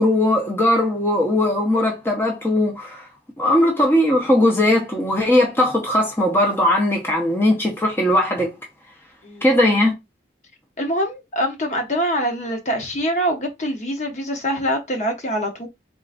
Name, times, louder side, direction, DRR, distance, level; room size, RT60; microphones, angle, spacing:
voice 1, 0.0-3.0 3.4-8.5 9.4-9.9, left 1 dB, 15° left, 0.8 m, -19 dB
voice 2, 10.8-15.7, equal, 40° left, 0.9 m, -24 dB
3.8 x 3.7 x 2.5 m
head